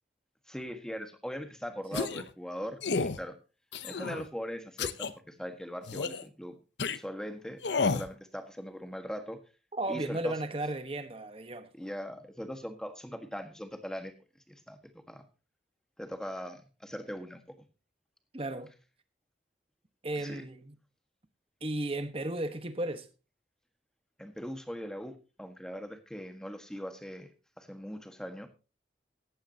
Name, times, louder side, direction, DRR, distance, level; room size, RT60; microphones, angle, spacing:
voice 1, 0.5-3.3 3.8-6.5 6.9-9.4 9.9-10.4 11.7-14.1 14.5-15.2 16.0-17.4 20.2-20.4 24.2-27.3 27.6-28.5, equal, 5° left, 1.5 m, -40 dB
sound 1, 1.9-2.3 2.8-3.2 3.7-4.2 4.8-5.1 5.9-6.2 6.8-7.0 7.6-8.1, left 4 dB, 75° left, 0.7 m, -31 dB
voice 2, 9.7-11.7 18.3-18.7 20.0-20.8 21.6-23.1, right 1 dB, 30° right, 1.2 m, -35 dB
15.5 x 11.0 x 2.8 m
head